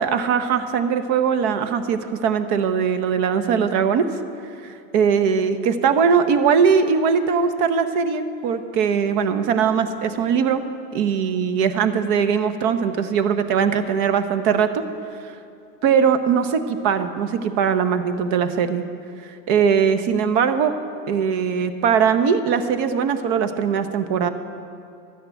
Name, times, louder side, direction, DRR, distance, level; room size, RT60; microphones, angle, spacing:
voice 1, 0.0-4.1 4.6-10.6 10.9-14.7 15.8-18.8 19.2-20.7 21.1-24.3, right 6 dB, 65° right, 10 dB, 1.0 m, -20 dB
12.5 x 6.6 x 9.3 m, 2.5 s
supercardioid pair, 135°, 40 cm